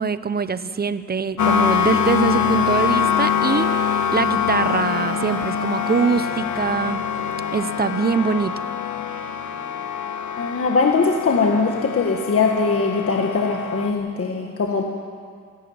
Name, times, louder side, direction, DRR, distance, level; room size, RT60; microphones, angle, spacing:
voice 1, 0.0-3.7 4.1-7.0 7.5-8.5, right 5 dB, 30° right, 13 dB, 0.8 m, -23 dB
sound 1, 1.4-13.9, left 7 dB, 70° left, 1.5 m, -24 dB
voice 2, 10.4-14.8, left 4 dB, 45° left, 1 dB, 1.7 m, -21 dB
27.0 x 12.5 x 8.8 m, 2.1 s
cardioid pair, 115°, 31 cm